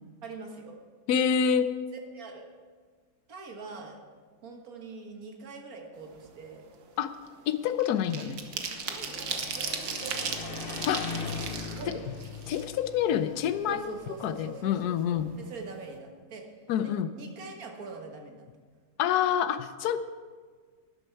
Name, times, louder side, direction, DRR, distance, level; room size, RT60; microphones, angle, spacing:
voice 1, 0.2-0.8 2.1-2.5 3.3-4.0 4.4-6.7 8.5-11.1 11.7-12.1 13.7-16.5 16.8-18.4, right 4 dB, 65° right, 2 dB, 1.9 m, -43 dB
voice 2, 1.1-1.8 7.0-7.1 7.5-8.4 10.9-11.1 11.9-12.0 12.5-13.9 14.2-15.3 16.7-17.1 19.0-20.0, left 8 dB, 85° left, 11 dB, 1.2 m, -27 dB
sound 1, 6.1-6.3 6.7-13.1 13.5-13.6 13.9-14.8 15.1-15.3 15.6-15.9, right 6 dB, 85° right, 1.6 m, -37 dB
sound 2, 8.3-14.5, left 5 dB, 45° left, 0.9 m, -40 dB
12.5 x 11.0 x 4.5 m, 1.5 s
omnidirectional pair, 1.6 m